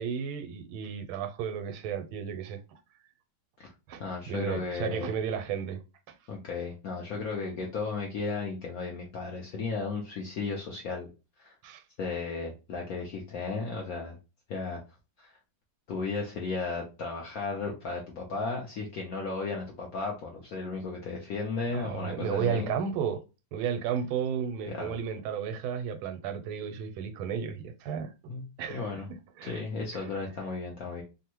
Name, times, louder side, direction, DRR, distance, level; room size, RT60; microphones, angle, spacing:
voice 1, 0.0-2.8 3.9-5.8 6.1-6.2 11.6-11.8 21.7-23.2 23.5-28.3 28.6-29.6 29.9-30.1, right 7 dB, 90° right, 1.4 m, -33 dB
voice 2, 4.0-5.1 6.3-11.1 11.4-11.5 12.0-14.2 14.5-14.8 15.2-15.4 15.9-22.7 24.7-25.0 28.3-28.4 28.7-29.1 29.4-31.0, left 4 dB, 70° left, 0.8 m, -34 dB
3.4 x 2.0 x 2.9 m
omnidirectional pair, 2.2 m